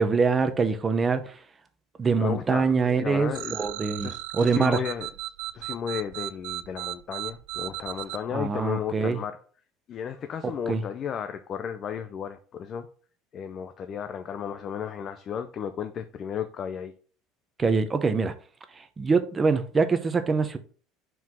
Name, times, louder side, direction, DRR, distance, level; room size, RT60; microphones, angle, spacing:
voice 1, 0.0-1.4 2.0-4.8 8.3-9.2 10.4-10.8 17.6-18.3 18.8-20.6, right 4 dB, 15° right, 0.7 m, -24 dB
voice 2, 2.2-3.6 4.0-5.1 5.5-9.4 9.9-12.9 13.3-16.9, left 8 dB, 30° left, 0.5 m, -34 dB
sound 1, 3.3-8.2, right 17 dB, 70° right, 0.5 m, -36 dB
5.9 x 4.7 x 6.0 m
cardioid pair, 165°, 0 cm